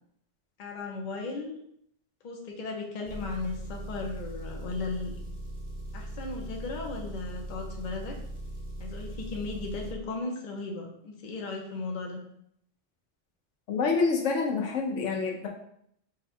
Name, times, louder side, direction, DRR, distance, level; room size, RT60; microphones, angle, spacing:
voice 1, 0.6-1.5 2.2-5.2 5.9-8.2 8.8-12.2, left 3 dB, 45° left, 1 dB, 0.8 m, -36 dB
Engine, 3.1-10.0, right 1 dB, 30° right, 0.6 m, -39 dB
voice 2, 13.7-15.5, left 4 dB, 85° left, 0 dB, 1.1 m, -27 dB
4.9 x 2.3 x 4.3 m, 0.71 s
omnidirectional pair, 1.2 m